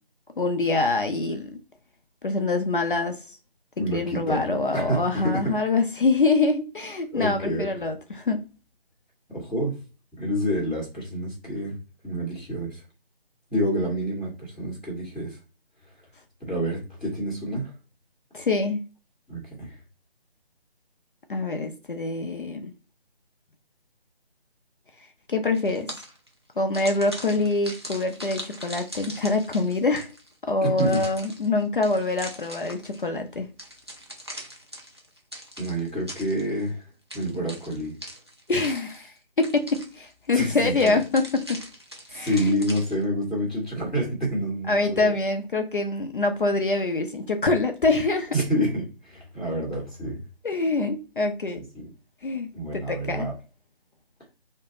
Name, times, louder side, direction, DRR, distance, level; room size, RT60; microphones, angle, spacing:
voice 1, 0.4-1.6 2.2-3.4 3.9-8.4 18.3-18.8 21.3-22.7 25.3-25.9 26.6-30.1 30.4-33.5 38.5-41.6 42.1-42.4 44.7-48.3 50.4-51.6 52.2-53.3, left 3 dB, 55° left, 0.5 m, -25 dB
voice 2, 3.8-5.4 7.1-7.7 9.3-9.7 10.2-11.7 12.0-12.8 13.5-15.4 16.4-17.7 19.3-19.8 30.6-31.0 35.6-36.9 37.1-37.9 40.3-40.9 42.1-45.1 48.3-50.2 51.5-51.9 52.5-53.3, equal, 5° left, 0.8 m, -28 dB
sound 1, 25.5-26.3 26.7-30.3 30.8-33.1 33.6-36.7 37.1-39.2 39.4-40.1 40.8-43.0, equal, 25° right, 0.5 m, -41 dB
2.4 x 2.1 x 2.9 m
figure-of-eight pair, 155°, 31 cm